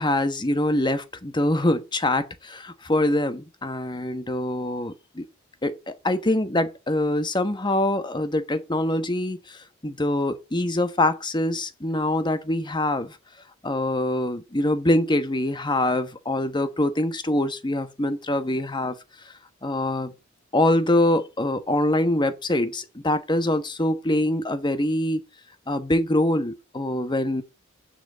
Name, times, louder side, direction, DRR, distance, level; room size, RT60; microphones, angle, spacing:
voice 1, 0.0-5.3 5.6-9.6 9.8-13.1 13.6-18.9 19.6-20.1 20.5-25.2 25.7-27.4, left 1 dB, 20° left, 1.2 m, -24 dB
6.8 x 6.0 x 7.5 m
head